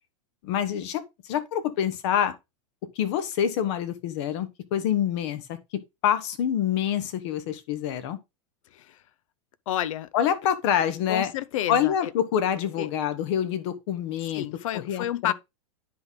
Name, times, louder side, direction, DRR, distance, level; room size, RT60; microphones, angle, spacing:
voice 1, 0.4-1.0 1.3-2.3 3.0-5.6 6.0-8.2 10.1-11.3 11.7-14.5 14.7-15.3, left 9 dB, 55° left, 1.2 m, -26 dB
voice 2, 9.7-10.1 11.1-12.1 12.8-12.9 14.3-15.3, left 12 dB, 75° left, 0.6 m, -30 dB
10.0 x 3.9 x 3.8 m
supercardioid pair, 145°, 17 cm